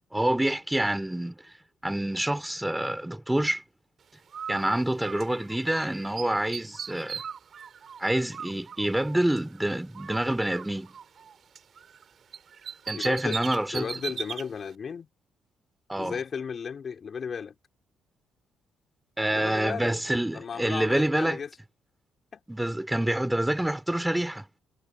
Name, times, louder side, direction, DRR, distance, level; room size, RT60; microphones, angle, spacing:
voice 1, 0.1-1.4 1.8-3.6 4.5-7.2 8.0-10.9 12.9-13.9 15.9-16.2 19.2-21.4 22.5-24.5, right 1 dB, 5° right, 4.0 m, -27 dB
Bird, 4.3-5.9 6.2-9.6 9.9-12.0 12.3-14.5, right 7 dB, 55° right, 4.4 m, -39 dB
voice 2, 12.9-13.4 13.7-15.1 16.0-17.6 19.3-20.0 20.3-21.5 22.3-22.4, left 6 dB, 50° left, 3.6 m, -34 dB
cardioid pair, 90°, 0 cm